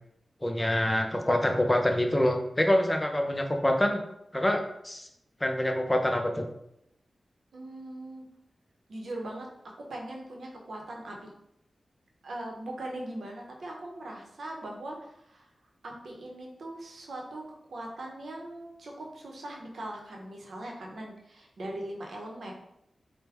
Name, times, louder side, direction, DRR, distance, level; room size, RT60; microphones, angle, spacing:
voice 1, 0.4-4.0 4.3-5.1 5.4-6.4, left 1 dB, 20° left, 4 dB, 0.6 m, -26 dB
voice 2, 7.5-8.3 8.9-9.5 9.8-11.3 12.2-15.5 15.8-22.5, right 1 dB, 85° right, 0 dB, 0.8 m, -40 dB
4.7 x 2.1 x 3.4 m, 0.78 s
cardioid pair, 50°, 0 cm